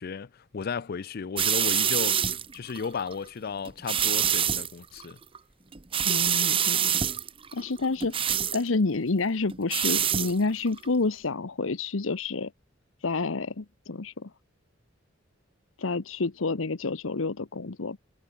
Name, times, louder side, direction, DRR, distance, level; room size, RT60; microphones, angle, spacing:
voice 1, 0.0-2.2 2.5-5.2, left 5 dB, 50° left, 0.5 m, -34 dB
sound 1, 1.4-3.1 3.7-4.7 5.0-5.4 5.7-8.6 9.5-10.3 10.7-10.9, right 8 dB, 30° right, 0.8 m, -26 dB
voice 2, 6.0-6.9 7.5-12.5 13.0-14.3 15.8-18.0, left 3 dB, 80° left, 0.9 m, -29 dB
head